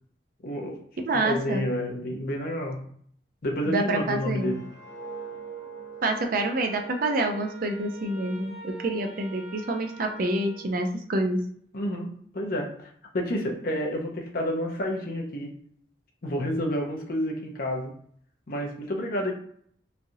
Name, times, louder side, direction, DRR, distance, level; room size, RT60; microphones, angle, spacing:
voice 1, 0.4-0.8 1.1-2.8 3.4-4.6 11.7-15.6 16.2-18.0 18.5-19.3, equal, 55° left, 1 dB, 0.6 m, -30 dB
voice 2, 1.1-1.6 3.7-4.6 6.0-11.4, right 2 dB, 50° right, 4 dB, 0.5 m, -27 dB
sound 1, 4.0-9.0 9.4-9.7, right 5 dB, 90° right, 1.0 m, -44 dB
Wind instrument woodwind instrument, 6.4-11.1, right 1 dB, 5° right, 0.7 m, -46 dB
3.1 x 2.4 x 2.7 m, 0.62 s
head